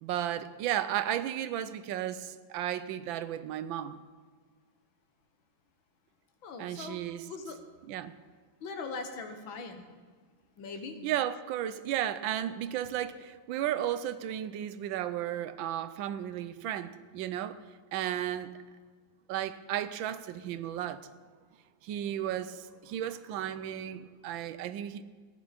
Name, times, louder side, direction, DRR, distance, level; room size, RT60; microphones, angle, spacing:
voice 1, 0.0-4.0 6.6-7.3 7.9-8.2 11.0-17.6 17.9-18.5 19.3-21.1 21.8-25.0, right 11 dB, 80° right, 1.4 m, -34 dB
voice 2, 6.4-7.0 7.3-7.6 8.6-9.8 10.6-11.0, left 4 dB, 80° left, 1.9 m, -40 dB
15.5 x 10.5 x 4.1 m
omnidirectional pair, 2.1 m